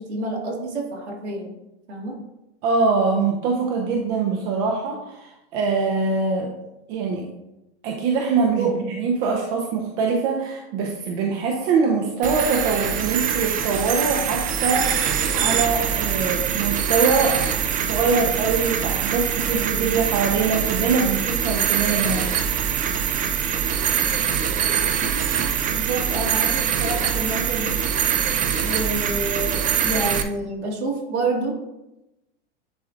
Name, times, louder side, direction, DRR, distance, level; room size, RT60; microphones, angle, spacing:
voice 1, 0.0-1.5 1.9-2.1 8.6-8.7 25.7-27.8 28.6-31.5, right 2 dB, 75° right, -1 dB, 2.0 m, -28 dB
voice 2, 2.6-6.5 6.9-7.3 7.8-14.9 15.3-17.4 17.7-22.3, right 4 dB, 55° right, 1 dB, 0.9 m, -23 dB
sound 1, 12.2-30.2, right 8 dB, 25° right, 0.5 m, -23 dB
10.5 x 3.7 x 2.5 m, 0.93 s
hypercardioid pair, 105°, 34 cm